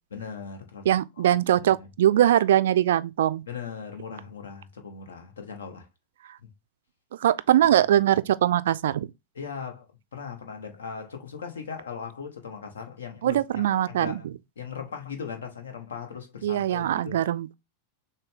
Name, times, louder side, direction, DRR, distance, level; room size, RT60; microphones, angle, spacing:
voice 1, 0.1-0.9 1.2-1.3 1.6-1.9 3.5-5.9 6.4-6.5 7.7-7.8 9.3-9.9 10.1-14.2 14.6-17.2, left 6 dB, 65° left, 1.1 m, -39 dB
voice 2, 0.9-3.4 7.1-9.1 13.2-14.2 16.4-17.5, right 12 dB, 60° right, 0.3 m, -22 dB
6.6 x 2.2 x 3.6 m
figure-of-eight pair, 90°, 0 cm